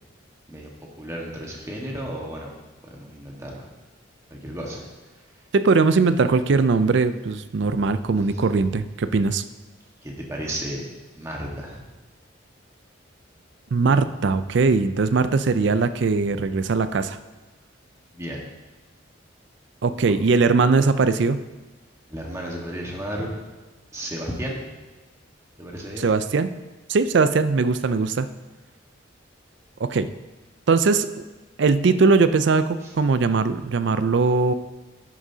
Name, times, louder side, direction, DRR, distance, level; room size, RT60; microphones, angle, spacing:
voice 1, 1.0-2.5 2.8-3.7 4.3-4.8 8.3-8.4 10.0-10.8 11.2-11.8 18.1-18.4 22.1-23.3 23.9-24.7 25.6-26.1 32.8-32.9, equal, 15° right, -2 dB, 1.4 m, -33 dB
voice 2, 5.5-9.4 13.7-17.2 19.8-21.4 26.0-26.5 26.9-28.3 29.8-30.1 30.7-31.1 31.6-34.5, right 4 dB, 60° right, 12 dB, 0.4 m, -20 dB
11.0 x 9.8 x 2.8 m, 1.2 s
head